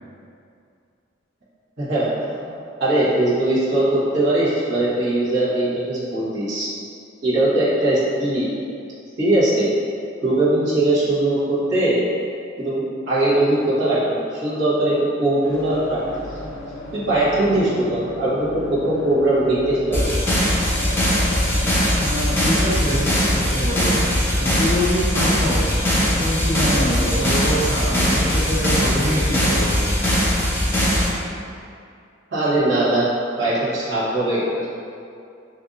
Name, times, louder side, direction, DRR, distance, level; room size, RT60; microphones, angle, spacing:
voice 1, 1.8-6.7 7.2-8.5 9.2-9.7 10.2-12.0 12.6-16.2 16.9-20.1 32.3-33.1 33.4-34.6, right 1 dB, 65° right, -12 dB, 1.1 m, -20 dB
sound 1, 15.4-27.2, left 1 dB, 85° left, 0.5 m, -36 dB
sound 2, 19.9-31.1, equal, 10° left, 0.8 m, -20 dB
voice 2, 22.0-24.1 24.3-29.9, equal, 90° right, -9 dB, 1.1 m, -25 dB
3.7 x 2.6 x 2.5 m, 2.4 s
head